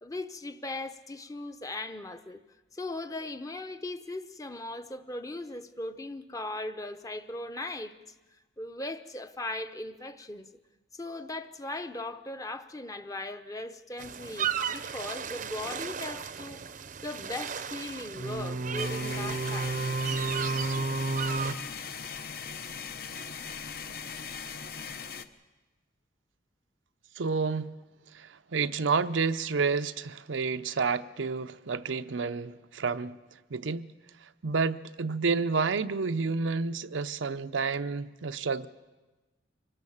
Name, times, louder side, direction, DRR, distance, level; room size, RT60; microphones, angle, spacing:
voice 1, 0.0-2.4 2.7-7.9 8.6-10.5 10.9-16.6 17.0-19.8, left 2 dB, 20° left, 0.8 m, -38 dB
sound 1, 14.0-21.5, right 4 dB, 45° right, 0.6 m, -32 dB
sound 2, 18.8-25.3, left 6 dB, 55° left, 0.8 m, -39 dB
voice 2, 27.2-27.7 28.1-33.1 33.5-33.9 34.4-38.7, right 4 dB, 90° right, 0.7 m, -30 dB
24.5 x 19.0 x 7.2 m
head